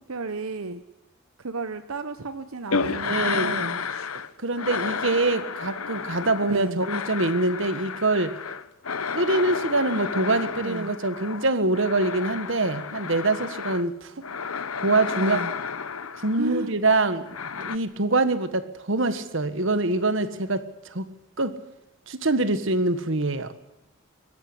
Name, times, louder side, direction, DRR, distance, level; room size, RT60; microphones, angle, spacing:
voice 1, 0.1-0.8 1.4-3.8 6.5-6.8 10.6-10.9 15.2-15.5 16.4-16.7, right 3 dB, 85° right, 10 dB, 1.0 m, -32 dB
sound 1, 2.7-4.3 4.6-13.9 14.2-16.6 17.3-17.8, left 6 dB, 85° left, 1.0 m, -31 dB
voice 2, 2.9-3.5 4.4-8.3 9.1-14.1 14.8-15.4 16.2-17.2 17.6-21.0 21.4-21.6 22.1-23.5, right 2 dB, 65° right, 12 dB, 1.6 m, -24 dB
24.5 x 14.0 x 10.0 m, 0.89 s
head